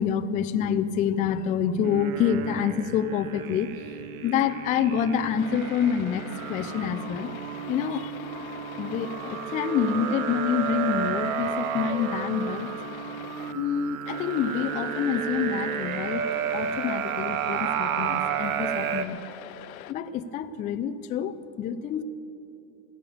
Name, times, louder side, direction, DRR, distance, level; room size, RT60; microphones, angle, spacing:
voice 1, 0.0-3.9 4.2-7.3 7.7-8.1 8.8-12.7 13.5-16.2 16.5-19.2 19.9-22.0, left 8 dB, 20° left, 10 dB, 0.4 m, -27 dB
sound 1, 1.8-19.1, right 9 dB, 75° right, 0.9 m, -32 dB
sound 2, 5.4-13.5 14.1-19.9, left 13 dB, 75° left, 0.7 m, -43 dB
15.5 x 11.5 x 6.9 m, 2.7 s
hypercardioid pair, 115°, 42 cm